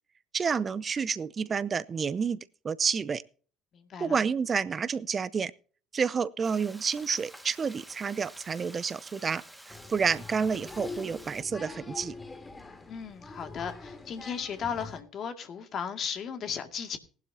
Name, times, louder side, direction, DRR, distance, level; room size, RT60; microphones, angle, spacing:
voice 1, 0.3-2.4 2.6-3.2 4.0-5.5 5.9-12.1, right 6 dB, 35° right, 0.6 m, -29 dB
voice 2, 3.7-4.2 12.9-17.0, left 7 dB, 45° left, 2.2 m, -36 dB
Frying (food), 6.4-11.4, right 1 dB, 5° right, 1.8 m, -50 dB
Applause, 9.7-15.0, left 3 dB, 20° left, 2.3 m, -44 dB
18.5 x 11.5 x 2.8 m
figure-of-eight pair, 60°, 0 cm